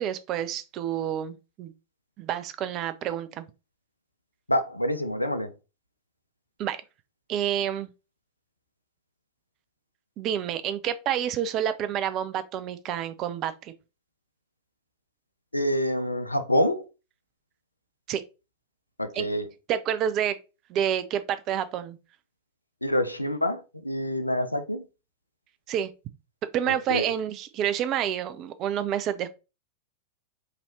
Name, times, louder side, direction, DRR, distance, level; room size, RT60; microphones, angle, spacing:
voice 1, 0.0-1.7 2.2-3.4 6.6-6.8 7.3-7.9 10.2-13.7 18.1-18.2 19.1-19.3 19.7-20.4 20.7-22.0 25.7-25.9 26.5-29.3, right 10 dB, 35° right, 0.4 m, -28 dB
voice 2, 4.5-5.5 15.5-16.8 19.0-19.5 22.8-24.8 26.7-27.1, equal, 85° left, 0.4 m, -27 dB
3.1 x 2.7 x 4.1 m
figure-of-eight pair, 90°, 0 cm